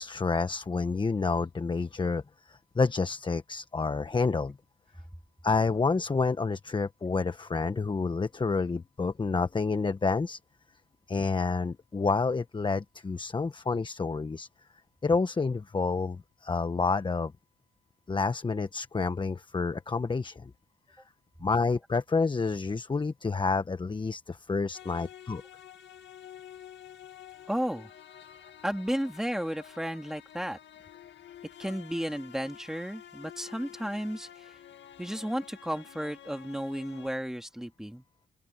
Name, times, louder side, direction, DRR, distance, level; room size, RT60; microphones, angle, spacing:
voice 1, 0.0-4.6 5.4-10.4 11.1-14.5 15.0-17.3 18.1-20.5 21.4-25.4, left 4 dB, 25° left, 1.2 m, -29 dB
sound 1, 24.7-37.1, left 10 dB, 65° left, 2.0 m, -50 dB
voice 2, 27.5-27.9 28.6-30.6 31.6-34.6 35.0-38.0, equal, ahead, 2.7 m, -33 dB
open air
cardioid pair, 90°, 20 cm